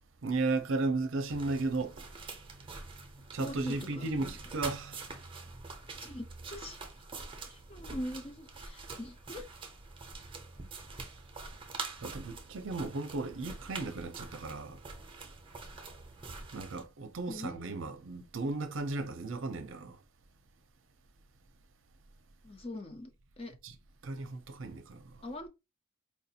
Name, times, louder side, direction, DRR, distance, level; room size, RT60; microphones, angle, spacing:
voice 1, 0.2-2.1 3.3-5.1 12.0-14.8 16.5-20.0 23.6-23.7 24.0-25.1, right 3 dB, 60° right, 0.6 m, -35 dB
sound 1, 1.3-16.8, right 3 dB, 25° right, 0.7 m, -45 dB
voice 2, 3.4-4.4 6.0-6.8 7.5-9.5 17.3-17.5 22.4-23.1 23.4-23.5 25.2-25.5, left 1 dB, 25° left, 0.5 m, -42 dB
4.5 x 2.5 x 2.7 m
head